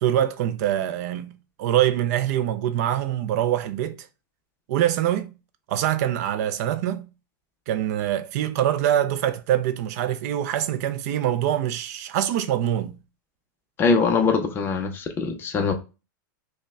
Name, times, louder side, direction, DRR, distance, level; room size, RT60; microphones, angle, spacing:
voice 1, 0.0-1.3 1.6-4.1 4.7-5.3 5.7-7.1 7.7-13.0, right 11 dB, 50° right, 0.3 m, -24 dB
voice 2, 13.8-15.7, left 4 dB, 20° left, 0.5 m, -22 dB
5.2 x 2.1 x 2.2 m
supercardioid pair, 150°, 11 cm